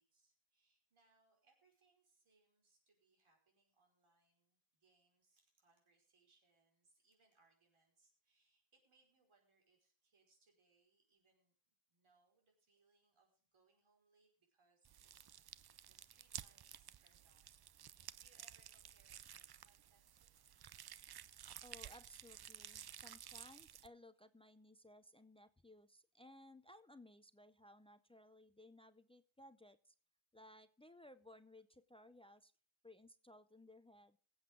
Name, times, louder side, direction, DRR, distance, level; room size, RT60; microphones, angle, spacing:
voice 1, 0.0-11.5 11.9-15.4 15.8-20.3, right 3 dB, 85° right, 1 dB, 5.1 m, -77 dB
sound 1, 14.8-23.9, right 10 dB, 50° right, 0.5 m, -54 dB
voice 2, 21.6-29.9 30.3-32.5 32.8-34.2, left 1 dB, 10° left, 13 dB, 0.5 m, -61 dB
22.0 x 8.0 x 3.7 m, 0.43 s
wide cardioid pair, 120°, 48 cm